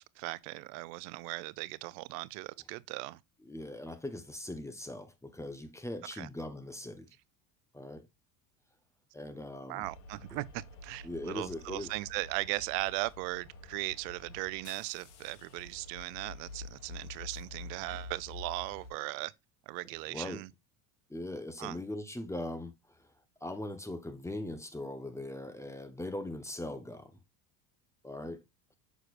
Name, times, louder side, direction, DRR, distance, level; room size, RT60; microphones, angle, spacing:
voice 1, 0.0-3.2 6.2-6.3 9.7-19.3 19.7-20.5 21.6-21.8, right 21 dB, 85° right, 0.6 m, -38 dB
voice 2, 3.5-7.1 7.7-8.0 9.1-9.9 10.3-10.4 11.0-11.9 20.1-20.4 21.1-23.1 23.4-27.2 28.0-28.4, left 1 dB, 5° left, 0.9 m, -40 dB
sound 1, 9.8-18.9, left 2 dB, 90° left, 1.7 m, -48 dB
6.5 x 6.3 x 2.4 m
supercardioid pair, 120°, 46 cm